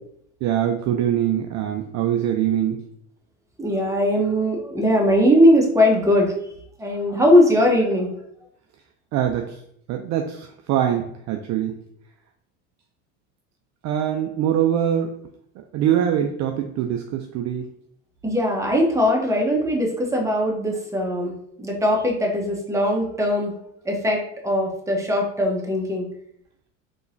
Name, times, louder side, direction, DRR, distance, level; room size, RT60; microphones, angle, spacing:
voice 1, 0.4-2.8 9.1-9.6 9.9-11.7 13.8-15.2 15.7-17.7, right 10 dB, 45° right, 4 dB, 0.4 m, -23 dB
voice 2, 3.6-6.3 6.8-8.1 18.2-23.5 23.8-26.1, equal, 5° right, 0 dB, 0.9 m, -20 dB
3.7 x 3.0 x 2.6 m, 0.70 s
hypercardioid pair, 90°, 41 cm